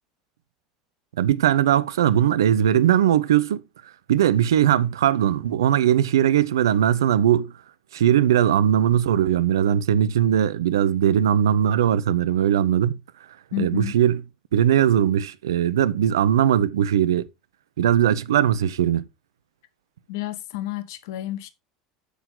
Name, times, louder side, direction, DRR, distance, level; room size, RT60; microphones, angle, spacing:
voice 1, 1.2-3.6 4.1-7.5 7.9-13.0 13.6-14.2 14.5-17.3 17.8-19.0, right 10 dB, 75° right, 0.7 m, -20 dB
voice 2, 13.5-13.9 20.1-21.5, left 14 dB, 65° left, 1.3 m, -30 dB
8.2 x 8.1 x 3.9 m
figure-of-eight pair, 75°, 2 cm